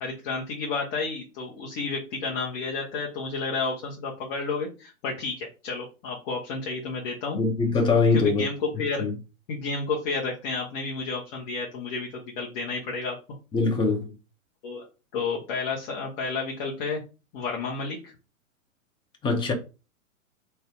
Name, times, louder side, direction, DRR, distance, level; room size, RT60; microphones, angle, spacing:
voice 1, 0.0-7.4 8.1-9.0 9.5-12.1 12.3-13.2 14.6-14.8 15.1-17.0 17.3-18.1, left 4 dB, 35° left, 1.3 m, -31 dB
voice 2, 7.4-8.5 9.0-9.1 13.5-14.1 19.2-19.5, left 4 dB, 10° left, 0.9 m, -22 dB
4.0 x 2.8 x 4.7 m
figure-of-eight pair, 110°, 41 cm